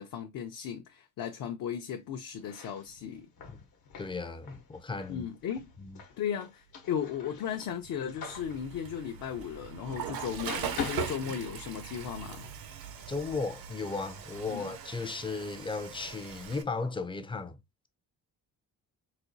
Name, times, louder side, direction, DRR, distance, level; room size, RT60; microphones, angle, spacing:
voice 1, 0.0-3.3 5.1-5.7 6.2-12.5 14.5-14.7, left 8 dB, 65° left, 0.6 m, -36 dB
sound 1, 2.3-10.2 10.4-12.1, left 6 dB, 85° left, 1.0 m, -44 dB
voice 2, 4.0-5.3 5.8-6.0 13.1-17.6, left 4 dB, 15° left, 0.4 m, -35 dB
sound 2, 6.4-16.2, right 7 dB, 45° right, 0.5 m, -51 dB
Water / Toilet flush, 8.3-16.6, right 7 dB, 80° right, 0.7 m, -41 dB
4.1 x 2.3 x 2.5 m
cardioid pair, 125°, 35 cm